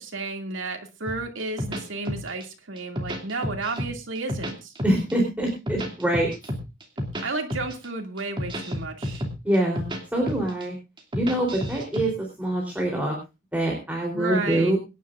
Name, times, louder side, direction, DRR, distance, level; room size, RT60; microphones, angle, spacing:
voice 1, 0.0-4.7 7.2-9.2 14.1-14.8, right 3 dB, 75° right, 4 dB, 2.4 m, -32 dB
sound 1, 1.1-2.4 2.8-3.9 4.1-5.1 5.5-7.2 7.5-7.8 8.2-10.0 10.3-10.6 11.0-12.0, equal, 25° right, 2.4 m, -30 dB
voice 2, 4.8-6.3 7.2-7.3 9.4-9.8 10.1-10.8 11.1-13.2 13.5-14.8, right 1 dB, 10° right, -1 dB, 3.5 m, -24 dB
24.5 x 10.5 x 2.5 m, 0.28 s
head